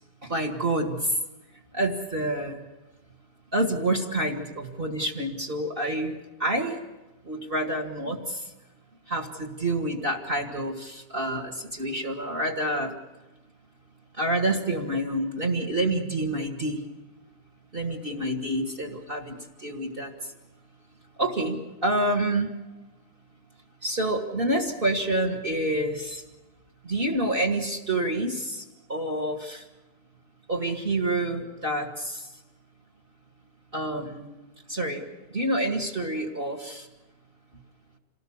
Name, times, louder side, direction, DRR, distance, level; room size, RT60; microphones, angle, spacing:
voice 1, 0.2-1.0 1.7-2.6 3.5-6.1 6.4-6.8 7.3-8.4 9.1-12.9 14.2-16.8 17.7-19.4 19.6-20.1 21.2-22.5 23.8-26.2 26.8-28.6 28.9-29.6 30.5-32.2 33.7-34.3 34.7-35.0 35.3-36.9, right 1 dB, 30° right, 5 dB, 2.1 m, -28 dB
27.0 x 18.5 x 7.2 m, 1.0 s
omnidirectional pair, 1.9 m